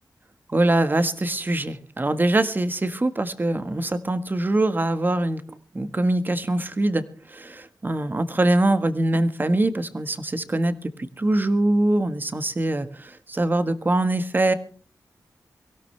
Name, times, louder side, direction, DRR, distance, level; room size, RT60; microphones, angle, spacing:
voice 1, 0.5-7.0 7.3-10.9 11.2-14.5, right 1 dB, 30° right, 10 dB, 1.5 m, -23 dB
24.0 x 16.5 x 3.3 m, 0.40 s
wide cardioid pair, 100°, 7 cm